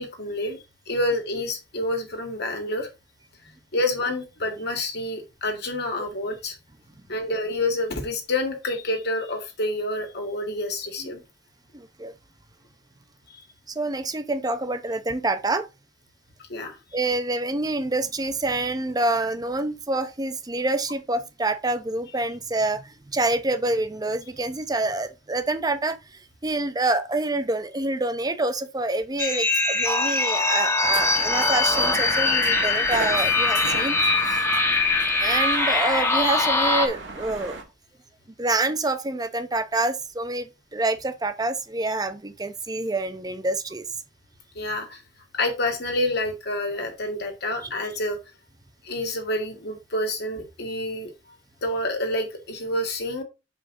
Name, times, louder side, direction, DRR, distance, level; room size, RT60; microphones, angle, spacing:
voice 1, 0.0-2.9 3.7-6.6 7.1-11.2 13.3-13.4 16.5-16.8 44.6-45.0 45.3-48.2 48.8-51.1 51.6-53.2, left 1 dB, 65° left, 2.0 m, -28 dB
voice 2, 11.7-12.1 13.7-15.7 16.9-26.0 26.4-34.0 34.2-34.4 35.2-37.6 38.4-43.8, right 2 dB, 20° right, 0.7 m, -27 dB
sound 1, 29.2-36.9, left 3 dB, 15° left, 1.1 m, -22 dB
sound 2, 30.8-37.6, right 3 dB, 70° right, 1.9 m, -36 dB
6.4 x 5.1 x 3.8 m
head